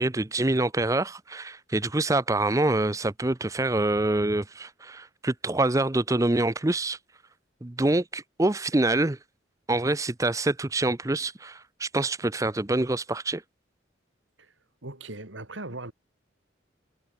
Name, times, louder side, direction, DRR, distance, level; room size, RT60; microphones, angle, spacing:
voice 1, 0.0-7.0 7.6-9.2 9.7-13.4, right 2 dB, 15° right, 0.6 m, -26 dB
voice 2, 14.8-15.9, right 2 dB, 80° right, 3.5 m, -39 dB
head